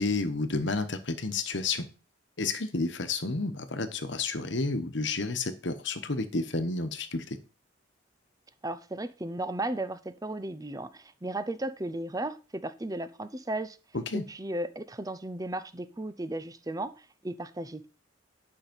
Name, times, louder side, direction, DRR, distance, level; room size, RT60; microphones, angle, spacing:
voice 1, 0.0-1.9 2.4-7.4 13.9-14.2, left 3 dB, 65° left, 10 dB, 1.2 m, -31 dB
voice 2, 8.6-13.8 14.1-17.9, right 1 dB, 20° right, 12 dB, 0.7 m, -35 dB
10.5 x 5.7 x 5.3 m, 0.33 s
head